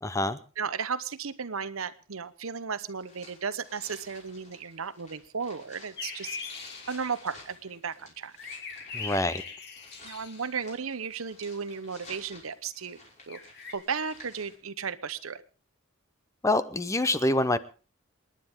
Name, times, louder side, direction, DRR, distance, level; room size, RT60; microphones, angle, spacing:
voice 1, 0.0-0.4 8.9-9.4 16.4-17.6, left 2 dB, 15° left, 13 dB, 0.7 m, -26 dB
voice 2, 0.6-8.3 10.0-13.0 13.3-13.4 13.7-15.4, right 6 dB, 90° right, 14 dB, 0.9 m, -35 dB
sound 1, 3.0-14.6, left 2 dB, 35° left, 5.6 m, -53 dB
sound 2, 6.0-7.4 8.4-10.6 13.3-13.8, left 5 dB, 55° left, 2.5 m, -41 dB
28.0 x 10.5 x 3.6 m, 0.35 s
head